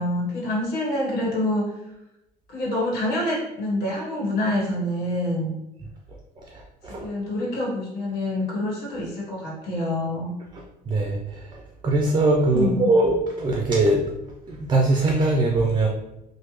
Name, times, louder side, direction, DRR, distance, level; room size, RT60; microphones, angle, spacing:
voice 1, 0.0-1.7 2.5-5.5 6.9-10.3 12.5-12.9, left 1 dB, 70° left, -4 dB, 1.3 m, -26 dB
voice 2, 10.9-11.2 11.8-14.0 14.5-15.9, right 2 dB, 25° right, 0 dB, 0.4 m, -21 dB
3.3 x 2.1 x 3.1 m, 0.90 s
cardioid pair, 110°, 17 cm